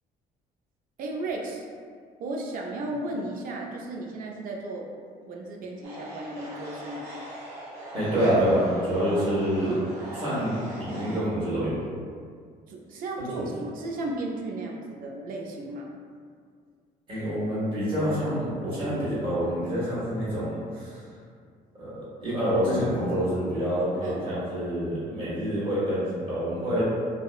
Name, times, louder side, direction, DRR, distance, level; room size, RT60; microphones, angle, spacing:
voice 1, 1.0-1.6 2.2-4.9 5.2-7.1 12.7-15.9 24.0-24.3, right 2 dB, 55° right, 0 dB, 0.4 m, -34 dB
sound 1, 5.8-11.2, right 1 dB, 85° right, 0.7 m, -41 dB
voice 2, 7.9-9.8 10.1-11.8 13.3-13.4 17.1-21.1 21.7-26.8, equal, 30° right, -9 dB, 1.2 m, -27 dB
2.6 x 2.0 x 2.3 m, 2.1 s
cardioid pair, 110°, 17 cm